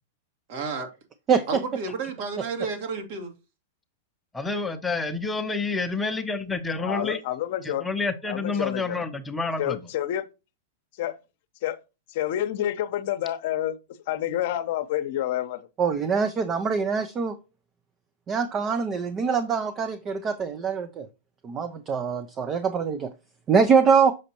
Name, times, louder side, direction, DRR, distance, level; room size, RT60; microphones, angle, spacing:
voice 1, 0.5-0.9 1.5-3.3, right 4 dB, 60° right, 1.9 m, -31 dB
voice 2, 4.3-7.2 7.6-9.8, left 3 dB, 10° left, 0.7 m, -28 dB
voice 3, 6.8-7.8 8.3-9.0 9.6-10.2 11.0-11.2 11.6-11.8 12.1-13.7 14.1-15.6, left 12 dB, 60° left, 0.7 m, -28 dB
voice 4, 15.8-17.4 18.3-21.1 21.4-23.1 23.5-24.2, right 6 dB, 25° right, 0.6 m, -23 dB
6.4 x 5.0 x 2.9 m
hypercardioid pair, 130°, 0 cm